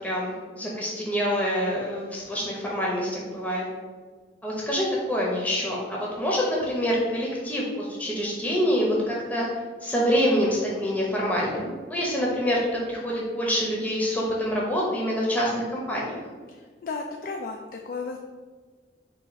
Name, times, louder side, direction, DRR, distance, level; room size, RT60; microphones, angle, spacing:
voice 1, 0.0-3.6 4.4-9.5 9.8-16.2, equal, 10° left, -4 dB, 0.7 m, -26 dB
voice 2, 16.5-18.2, left 4 dB, 50° left, 2 dB, 0.3 m, -34 dB
3.9 x 2.4 x 4.6 m, 1.4 s
head